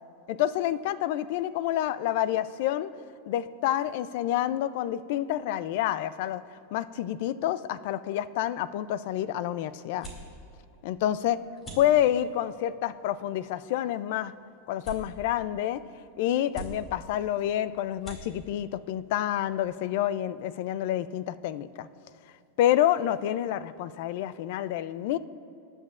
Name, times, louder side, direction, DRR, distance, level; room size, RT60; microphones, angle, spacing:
voice 1, 0.3-2.9 3.3-6.4 6.7-10.1 10.8-11.4 11.8-14.3 14.7-15.8 16.2-21.9 22.6-25.2, left 12 dB, 50° left, 16 dB, 0.4 m, -28 dB
sound 1, 8.6-20.1, right 1 dB, 15° left, 2.5 m, -48 dB
22.0 x 11.0 x 2.5 m, 2.6 s
supercardioid pair, 165°, 0 cm